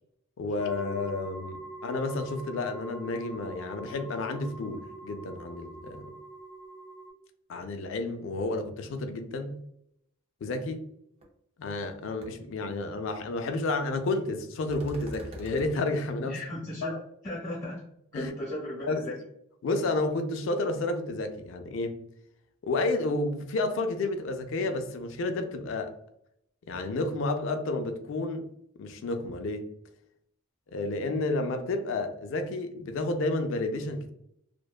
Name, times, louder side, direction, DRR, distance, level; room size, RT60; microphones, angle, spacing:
voice 1, 0.4-6.1 7.5-9.6 10.4-10.8 11.6-16.4 16.8-17.0 18.1-18.3 18.8-19.0 19.6-22.0 22.6-25.9 26.7-28.5 28.8-29.7 30.7-34.1, left 2 dB, 60° left, 7 dB, 0.3 m, -31 dB
sound 1, 0.6-7.1, right 2 dB, 70° right, 1.0 m, -44 dB
sound 2, 11.2-11.3 11.7-11.9 12.2-12.3 14.7-15.7, right 1 dB, 30° right, 0.4 m, -42 dB
voice 2, 16.2-16.9 17.2-17.8 18.1-19.2, left 1 dB, 15° left, -4 dB, 0.7 m, -36 dB
2.5 x 2.1 x 2.3 m, 0.76 s
head